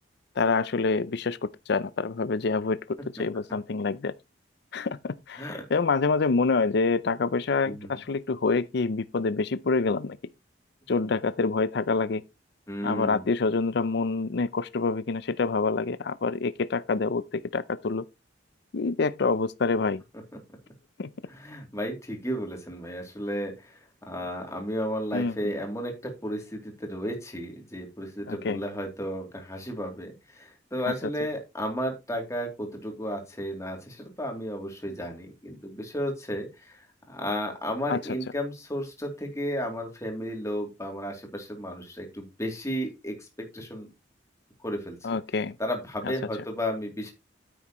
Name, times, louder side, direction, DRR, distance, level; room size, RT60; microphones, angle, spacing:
voice 1, 0.4-4.1 4.7-10.2 10.9-12.2 12.8-18.0 18.7-20.0 21.0-21.1 25.1-25.5 28.3-28.6 37.9-38.0 45.0-45.5, left 4 dB, 60° left, 0.5 m, -27 dB
voice 2, 7.6-8.0 12.7-13.2 21.3-23.8 24.1-43.3 43.5-43.9 44.6-45.0 45.6-47.1, equal, 15° left, 2.8 m, -33 dB
9.7 x 7.9 x 3.0 m
head